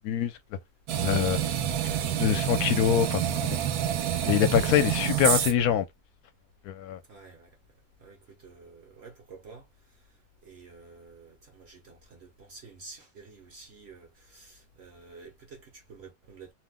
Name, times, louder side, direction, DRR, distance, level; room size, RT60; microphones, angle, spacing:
sound 1, 0.9-5.7, right 9 dB, 80° right, 1.1 m, -28 dB
voice 1, 1.0-1.4 2.2-3.6 4.3-5.8 6.7-7.0, left 10 dB, 80° left, 1.1 m, -24 dB
voice 2, 4.6-4.9 7.1-7.5 8.0-9.6 10.4-16.5, right 4 dB, 55° right, 0.8 m, -49 dB
2.7 x 2.1 x 3.4 m
omnidirectional pair, 1.6 m